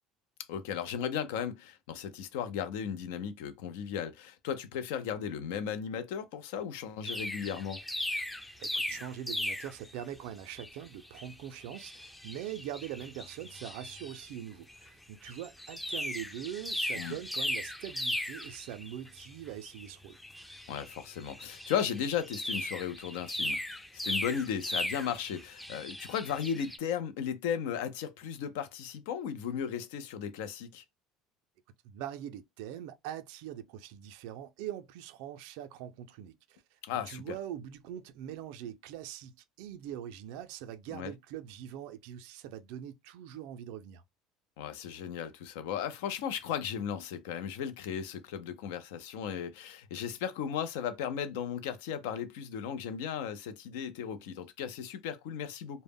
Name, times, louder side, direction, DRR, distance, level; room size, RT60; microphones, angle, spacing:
voice 1, 0.5-7.8 17.0-17.2 20.7-23.6 24.0-30.8 36.8-37.3 40.9-41.1 44.6-55.8, left 8 dB, 90° left, 0.4 m, -36 dB
sound 1, 7.0-10.0 10.5-10.8 11.1-14.4 14.7-14.9 15.3-26.8, left 1 dB, 5° left, 0.3 m, -38 dB
voice 2, 8.6-20.2 31.8-36.8 37.0-44.0, right 11 dB, 80° right, 0.3 m, -42 dB
2.0 x 2.0 x 3.4 m
cardioid pair, 130°, 0 cm